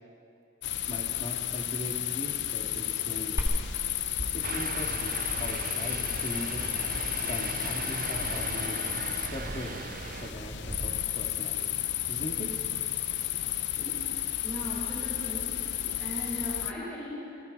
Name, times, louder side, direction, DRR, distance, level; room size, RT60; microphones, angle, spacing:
sound 1, 0.6-16.7, left 12 dB, 55° left, 0.8 m, -33 dB
voice 1, 0.9-3.5 4.3-6.8 7.3-8.8 9.2-9.8 10.1-10.5 10.8-11.7 12.1-12.5, left 1 dB, 35° left, 0 dB, 2.3 m, -39 dB
Glass, 3.4-11.3, equal, 15° right, 2.5 m, -38 dB
Distant Train Passing, 4.4-10.3, right 6 dB, 40° right, 0.5 m, -38 dB
voice 2, 14.4-15.5 16.0-17.2, left 1 dB, 5° left, -9 dB, 4.8 m, -38 dB
29.5 x 22.5 x 4.2 m, 2.5 s
head